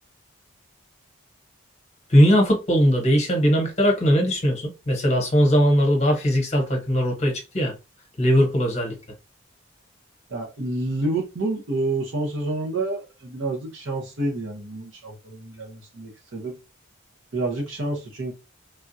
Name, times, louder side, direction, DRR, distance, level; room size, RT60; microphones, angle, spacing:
voice 1, 2.1-7.7 8.2-9.0, equal, 30° left, 1.0 m, -19 dB
voice 2, 10.3-16.6 17.3-18.3, right 2 dB, 65° right, 0.7 m, -28 dB
3.4 x 2.3 x 2.6 m
head